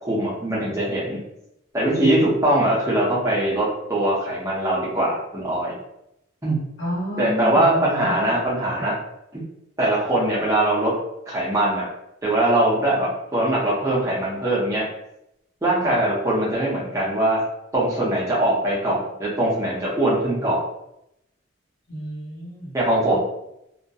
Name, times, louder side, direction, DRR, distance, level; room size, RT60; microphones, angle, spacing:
voice 1, 0.0-1.2 1.7-5.7 6.4-6.6 7.2-9.0 9.3-9.4 9.8-10.9 11.3-11.9 12.2-14.8 15.6-17.4 17.7-20.6 22.7-23.2, right 1 dB, 15° right, -6 dB, 0.6 m, -21 dB
voice 2, 6.8-8.4 8.8-8.9 15.8-16.0 21.9-22.7, equal, 80° left, -5 dB, 1.0 m, -31 dB
2.3 x 2.1 x 2.7 m, 0.84 s
head